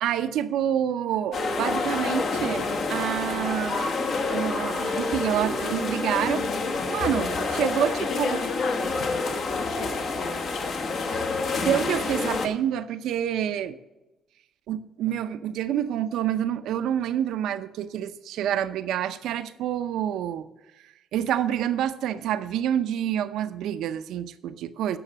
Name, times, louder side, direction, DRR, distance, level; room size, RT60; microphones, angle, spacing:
voice 1, 0.0-4.0 4.3-6.4 6.9-8.4 11.6-13.8 14.7-20.5 20.8-25.0, right 10 dB, 85° right, 0.6 m, -27 dB
sound 1, 1.3-12.5, left 3 dB, 60° left, 1.3 m, -28 dB
voice 2, 8.0-11.2, left 6 dB, 80° left, 0.8 m, -38 dB
9.9 x 6.5 x 7.4 m
cardioid pair, 90°, 0 cm